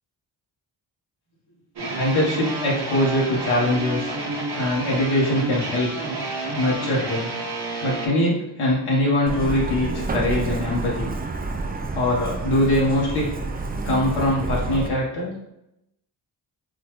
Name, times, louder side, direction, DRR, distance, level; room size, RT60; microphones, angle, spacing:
sound 1, 1.8-8.1, right 2 dB, 50° right, 1.0 m, -30 dB
voice 1, 1.9-4.1 4.6-5.9 6.6-7.3 7.8-11.1 11.9-13.3 13.8-15.3, left 1 dB, 75° left, -5 dB, 1.1 m, -22 dB
Truck, 9.3-14.9, right 3 dB, 20° right, 0.4 m, -29 dB
3.8 x 2.3 x 3.0 m, 0.83 s
supercardioid pair, 40°, 50 cm